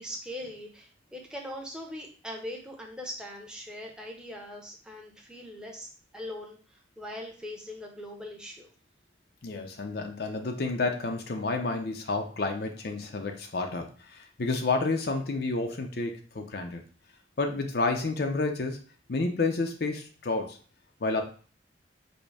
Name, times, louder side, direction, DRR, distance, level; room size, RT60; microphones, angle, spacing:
voice 1, 0.0-8.7, left 1 dB, 5° right, 0 dB, 0.8 m, -41 dB
voice 2, 9.4-16.8 17.4-18.8 19.1-20.6 21.0-21.2, left 3 dB, 55° left, 4 dB, 0.6 m, -30 dB
5.2 x 2.1 x 4.8 m, 0.40 s
head